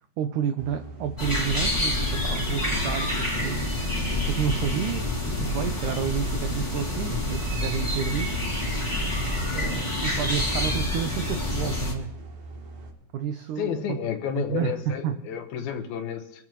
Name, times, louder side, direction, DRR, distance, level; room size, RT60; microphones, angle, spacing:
voice 1, 0.2-3.7 4.3-8.4 9.5-12.2 13.1-14.0 14.4-15.2, right 8 dB, 85° right, 8 dB, 1.7 m, -30 dB
sound 1, 0.6-12.9, right 2 dB, 65° right, 4.2 m, -42 dB
sound 2, 1.2-11.9, left 1 dB, 10° left, 2.0 m, -27 dB
voice 2, 13.6-16.5, left 8 dB, 80° left, 4 dB, 3.0 m, -31 dB
25.5 x 13.5 x 3.1 m, 0.84 s
omnidirectional pair, 4.4 m